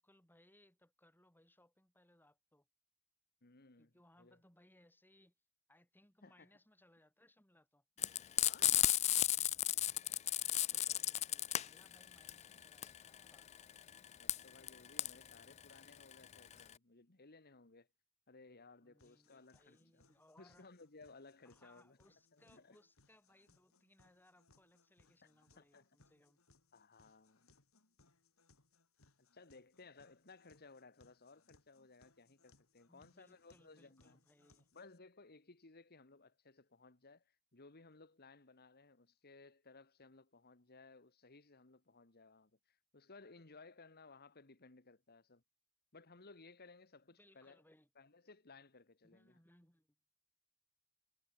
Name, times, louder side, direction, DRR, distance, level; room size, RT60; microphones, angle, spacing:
voice 1, 0.0-2.7 3.8-5.3 5.7-7.8 10.4-13.7 18.8-20.7 21.5-26.4 32.9-34.7 47.2-47.9 49.0-50.0, left 1 dB, 10° left, 5.1 m, -69 dB
voice 2, 3.4-4.4 6.2-6.5 8.3-9.0 10.6-11.1 14.2-17.9 18.3-20.0 20.4-22.0 22.3-22.8 25.2-26.0 26.7-27.5 29.2-34.2 34.7-45.4 45.9-47.6 48.0-49.4, left 3 dB, 50° left, 1.9 m, -60 dB
Frying (food), 8.0-16.7, left 13 dB, 30° left, 0.3 m, -34 dB
sound 1, 19.0-35.0, left 3 dB, 90° left, 3.5 m, -72 dB
head